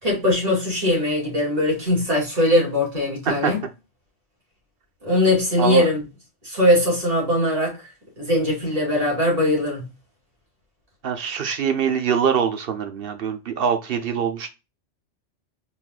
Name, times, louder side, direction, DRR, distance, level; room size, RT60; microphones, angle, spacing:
voice 1, 0.0-3.6 5.0-6.0 6.4-7.8 8.2-9.8, left 1 dB, 30° right, 2.5 m, -20 dB
voice 2, 11.0-14.5, right 7 dB, 55° right, 0.8 m, -23 dB
4.2 x 4.2 x 2.3 m
omnidirectional pair, 1.2 m